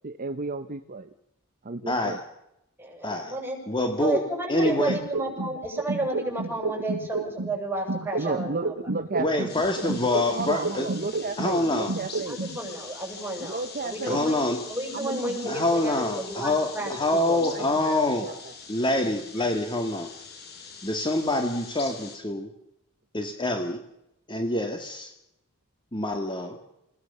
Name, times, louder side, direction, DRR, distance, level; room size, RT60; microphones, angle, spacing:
voice 1, 0.0-1.1 1.6-2.2 8.2-9.7 10.1-12.4 13.4-14.3 14.9-15.5 16.9-18.3, right 3 dB, 40° right, 9 dB, 0.9 m, -33 dB
voice 2, 1.9-2.2 3.0-3.3 3.7-4.2 4.5-5.0 9.2-10.9 11.4-11.9 14.1-14.6 15.5-18.3 18.7-20.1 20.8-22.5 23.1-23.8 24.3-25.1 25.9-26.6, left 2 dB, 20° left, 5 dB, 1.9 m, -26 dB
voice 3, 2.8-8.7 12.3-16.9 17.6-17.7, right 1 dB, 10° right, 1 dB, 7.5 m, -32 dB
sound 1, 4.6-7.6 7.9-11.6 11.9-12.6, right 3 dB, 65° right, 1.4 m, -31 dB
sound 2, 9.5-22.2, left 5 dB, 50° left, 4.5 m, -43 dB
28.0 x 17.5 x 6.8 m, 0.83 s
head